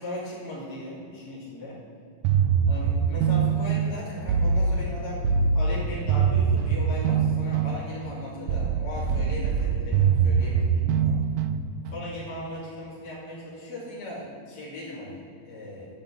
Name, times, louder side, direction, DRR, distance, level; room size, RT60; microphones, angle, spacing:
voice 1, 0.0-1.8 2.7-5.2 5.5-11.2 11.9-15.9, left 1 dB, 60° left, -8 dB, 4.1 m, -38 dB
sound 1, 2.2-12.0, right 6 dB, 80° right, 1.8 m, -24 dB
10.0 x 5.9 x 8.7 m, 2.5 s
omnidirectional pair, 3.4 m